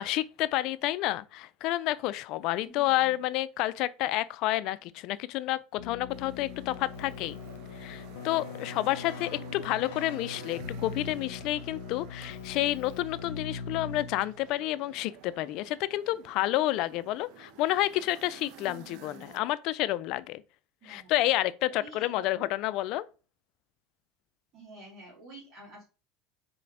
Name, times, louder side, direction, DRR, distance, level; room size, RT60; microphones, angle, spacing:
voice 1, 0.0-7.4 7.7-20.4 20.8-23.0, left 16 dB, 60° left, 0.3 m, -30 dB
voice 2, 2.7-3.2 18.6-19.5 20.8-21.1 21.7-22.5 24.5-25.8, right 2 dB, 45° right, 2.4 m, -49 dB
Keyboard (musical), 5.8-14.5, left 5 dB, 80° left, 0.7 m, -41 dB
sound 1, 6.1-19.4, right 9 dB, 65° right, 0.6 m, -52 dB
4.2 x 3.8 x 3.3 m
supercardioid pair, 125°, 0 cm